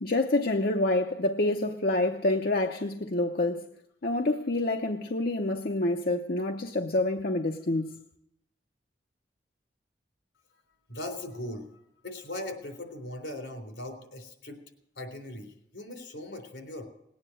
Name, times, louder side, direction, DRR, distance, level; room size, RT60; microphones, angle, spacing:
voice 1, 0.0-3.7 4.0-8.0, left 2 dB, 55° left, 0.8 m, -27 dB
voice 2, 10.9-11.7 12.0-14.6 15.0-16.8, left 1 dB, 80° left, 3.6 m, -39 dB
19.0 x 9.6 x 7.8 m
head